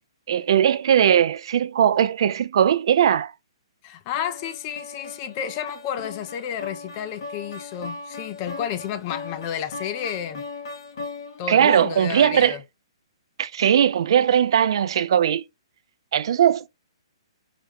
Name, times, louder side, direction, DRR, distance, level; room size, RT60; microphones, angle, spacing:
voice 1, 0.3-3.3 11.5-12.6 13.4-15.4 16.1-16.7, right 9 dB, 60° right, 0.5 m, -19 dB
voice 2, 3.8-10.4 11.4-12.6, left 9 dB, 35° left, 0.5 m, -31 dB
sound 1, 4.1-11.6, left 3 dB, 60° left, 1.2 m, -38 dB
4.9 x 2.2 x 3.4 m
hypercardioid pair, 150°, 3 cm